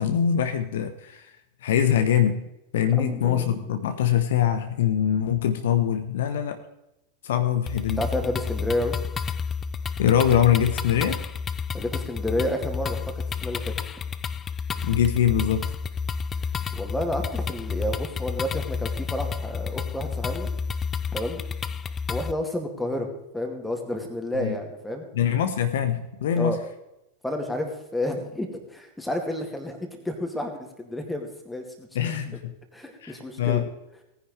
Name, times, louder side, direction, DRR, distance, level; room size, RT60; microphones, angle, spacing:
voice 1, 0.0-1.3 1.6-2.4 2.7-6.6 7.2-8.0 10.0-11.2 14.8-15.7 24.4-24.6 25.1-26.6 31.9-32.5 33.0-33.7, left 9 dB, 60° left, 9 dB, 0.9 m, -23 dB
voice 2, 2.7-3.7 8.0-9.0 11.7-13.0 13.4-13.7 16.7-20.5 21.1-21.4 22.1-23.1 23.3-25.0 26.4-26.6 27.2-32.1 32.7-33.7, left 1 dB, 5° left, 3 dB, 2.3 m, -30 dB
sound 1, 7.7-22.3, left 6 dB, 20° left, 0.5 m, -30 dB
18.5 x 10.0 x 3.3 m, 0.91 s
figure-of-eight pair, 90°, 0 cm